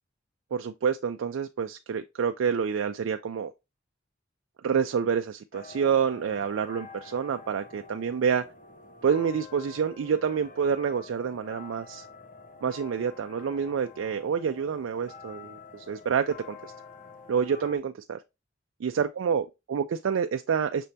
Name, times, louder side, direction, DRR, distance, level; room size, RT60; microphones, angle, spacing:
voice 1, 0.5-3.5 4.6-8.4 9.0-12.1 12.6-16.7 17.3-18.2 18.8-20.9, right 6 dB, 80° right, 0.4 m, -28 dB
sound 1, 5.5-17.8, left 4 dB, 40° left, 0.5 m, -47 dB
6.0 x 3.3 x 2.6 m
head